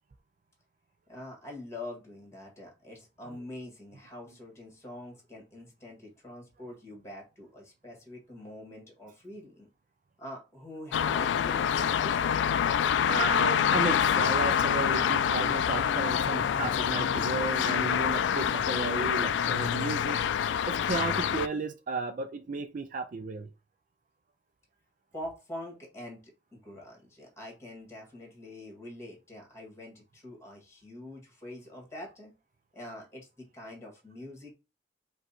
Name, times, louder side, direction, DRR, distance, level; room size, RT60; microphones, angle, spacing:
voice 1, 1.1-9.7 10.2-12.7 25.1-26.2 26.5-32.3 32.7-34.5, left 1 dB, 15° left, 1.8 m, -45 dB
sound 1, 10.9-21.5, left 8 dB, 85° left, 0.3 m, -26 dB
voice 2, 12.6-23.5, right 4 dB, 45° right, 0.4 m, -34 dB
5.2 x 2.3 x 4.1 m
head